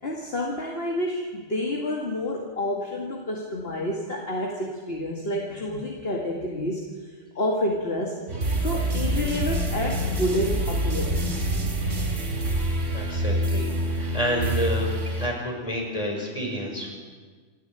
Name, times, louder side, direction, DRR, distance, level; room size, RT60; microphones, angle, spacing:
voice 1, 0.0-6.8 7.4-8.2 8.6-11.2, left 1 dB, 55° left, -1 dB, 2.4 m, -29 dB
sound 1, 8.3-15.3, right 1 dB, 80° right, 3.4 m, -26 dB
voice 2, 12.9-16.9, left 1 dB, 30° left, 0 dB, 5.5 m, -29 dB
28.0 x 12.5 x 9.1 m, 1.5 s
omnidirectional pair, 1.2 m